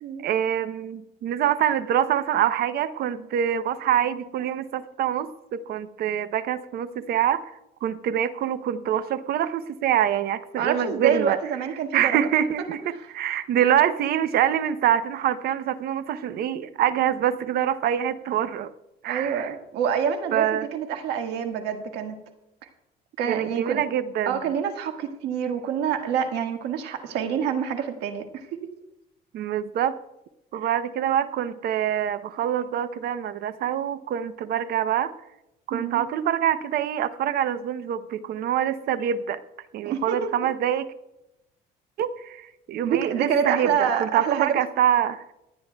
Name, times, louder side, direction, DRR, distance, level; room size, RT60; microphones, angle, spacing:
voice 1, 0.2-7.4 7.8-11.4 11.9-18.7 19.0-19.5 20.3-20.7 23.3-24.4 29.3-30.0 30.5-35.1 35.7-39.4 39.7-40.9 42.0-45.2, right 10 dB, 65° right, 13 dB, 0.7 m, -25 dB
voice 2, 10.6-12.2 12.9-13.1 19.0-22.1 23.2-23.8 24.3-28.6 35.7-36.0 39.8-40.3 42.8-44.6, right 8 dB, 85° right, 5 dB, 1.6 m, -27 dB
26.0 x 9.4 x 2.3 m, 0.89 s
cardioid pair, 110°, 17 cm